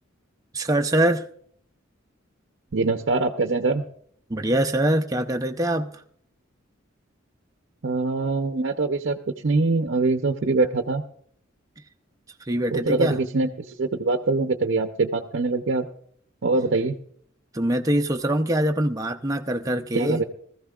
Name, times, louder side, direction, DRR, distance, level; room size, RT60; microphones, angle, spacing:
voice 1, 0.5-1.3 4.3-5.9 12.4-13.2 17.5-20.2, right 1 dB, 15° right, 0.5 m, -23 dB
voice 2, 2.7-3.8 7.8-11.0 12.7-13.5 13.8-15.9 16.4-17.0 19.9-20.2, right 3 dB, 60° right, 0.6 m, -23 dB
20.0 x 14.5 x 2.4 m
head